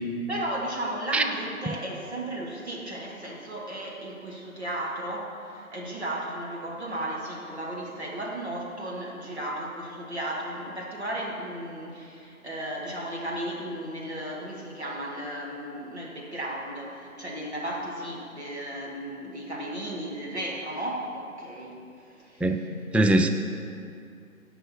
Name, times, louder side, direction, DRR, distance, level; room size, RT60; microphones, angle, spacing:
voice 1, 0.3-22.8, right 1 dB, 45° right, -3 dB, 2.1 m, -35 dB
voice 2, 22.9-23.3, right 2 dB, 5° right, 5 dB, 0.3 m, -20 dB
16.0 x 5.5 x 4.5 m, 2.5 s
figure-of-eight pair, 180°, 44 cm